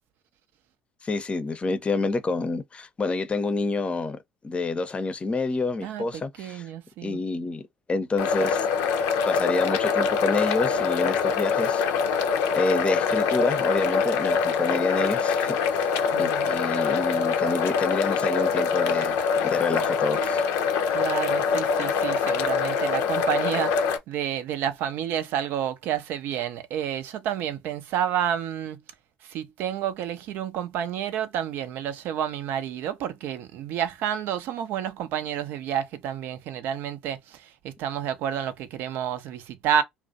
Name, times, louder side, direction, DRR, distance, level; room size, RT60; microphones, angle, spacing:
voice 1, 1.0-4.2 4.4-6.6 7.0-7.6 7.9-8.7 9.3-12.3 12.6-15.9 16.2-19.2 19.4-20.4, left 3 dB, 30° left, 0.6 m, -28 dB
voice 2, 5.8-7.2 16.1-16.5 20.9-28.8 29.2-39.8, right 10 dB, 65° right, 0.5 m, -30 dB
sound 1, 8.2-24.0, left 6 dB, 70° left, 0.5 m, -24 dB
2.4 x 2.1 x 2.4 m
hypercardioid pair, 60°, 4 cm